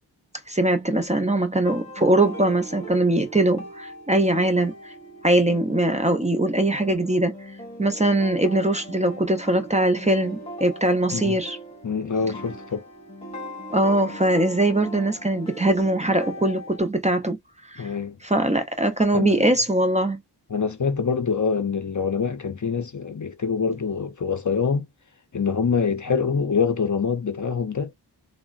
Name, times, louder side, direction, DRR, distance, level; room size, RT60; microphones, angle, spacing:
voice 1, 0.5-4.9 5.2-7.4 7.8-11.6 13.7-17.4 17.7-17.9 18.2-20.2, right 1 dB, 15° right, 0.6 m, -21 dB
sound 1, 1.6-16.8, equal, 15° left, 1.9 m, -40 dB
voice 2, 11.8-12.9 17.8-18.2 19.1-19.5 20.5-24.9 25.3-27.9, left 5 dB, 45° left, 0.6 m, -25 dB
3.6 x 2.1 x 2.3 m
wide cardioid pair, 70°, 41 cm